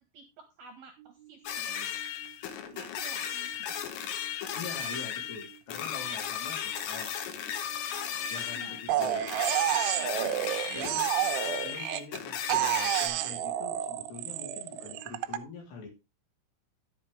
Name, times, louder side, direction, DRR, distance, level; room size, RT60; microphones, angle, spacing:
voice 1, 0.1-1.9 2.7-3.5 7.9-9.0 10.0-10.8, right 6 dB, 65° right, 5 dB, 2.6 m, -51 dB
sound 1, 1.0-15.1, right 16 dB, 45° right, 3.2 m, -56 dB
sound 2, 1.5-13.1, left 9 dB, 80° left, 3.9 m, -35 dB
voice 2, 4.5-7.1 8.3-9.3 10.7-11.1 11.6-15.9, left 4 dB, 60° left, 1 dB, 5.1 m, -44 dB
sound 3, 8.9-12.2 12.5-15.4, right 12 dB, 80° right, 2.5 m, -30 dB
11.0 x 8.1 x 3.5 m, 0.25 s
omnidirectional pair, 5.8 m